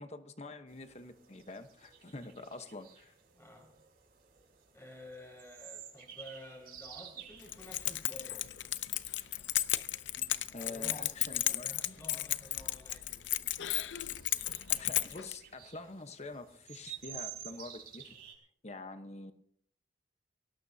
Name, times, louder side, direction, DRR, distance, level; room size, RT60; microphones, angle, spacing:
voice 1, 0.0-3.1 10.5-12.0 14.7-18.2 18.6-19.3, left 2 dB, 35° left, 1.1 m, -46 dB
sound 1, 0.7-18.3, right 9 dB, 50° right, 5.1 m, -53 dB
voice 2, 3.4-3.8 4.7-8.4 10.6-13.2, left 1 dB, 15° left, 5.5 m, -52 dB
Keys jangling, 7.4-15.3, left 14 dB, 70° left, 0.6 m, -34 dB
23.0 x 18.0 x 2.8 m
head